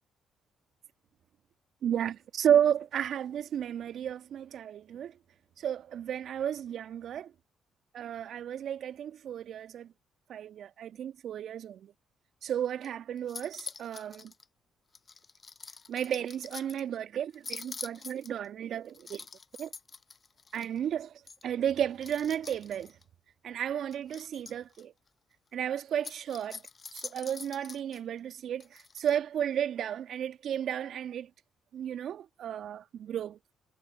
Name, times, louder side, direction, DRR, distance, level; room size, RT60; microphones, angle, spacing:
voice 1, 1.8-5.1 5.6-7.3 7.9-9.9 10.3-11.9 12.4-14.3 15.9-19.2 19.6-19.7 20.5-21.1 21.4-22.9 23.4-24.9 25.5-26.6 26.9-31.3 31.7-33.4, right 9 dB, 60° right, 1.6 m, -33 dB
sound 1, 12.6-12.9 13.2-14.4 14.9-16.8 17.3-18.5 18.9-20.8 21.3-21.4 22.0-23.0 23.9-24.8 25.9-28.0 28.6-29.1, left 5 dB, 40° left, 7.9 m, -45 dB
hypercardioid pair, 45°, 0 cm